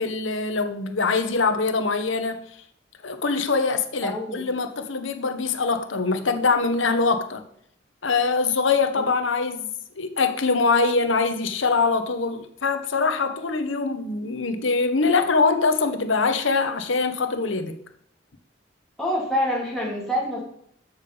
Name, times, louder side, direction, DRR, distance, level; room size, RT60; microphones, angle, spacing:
voice 1, 0.0-2.4 3.0-7.4 8.0-9.7 10.0-17.8, left 4 dB, 85° left, 1.0 m, -23 dB
voice 2, 4.0-4.5 9.0-9.1 19.0-20.5, equal, ahead, 2.8 m, -26 dB
7.3 x 6.9 x 5.4 m
head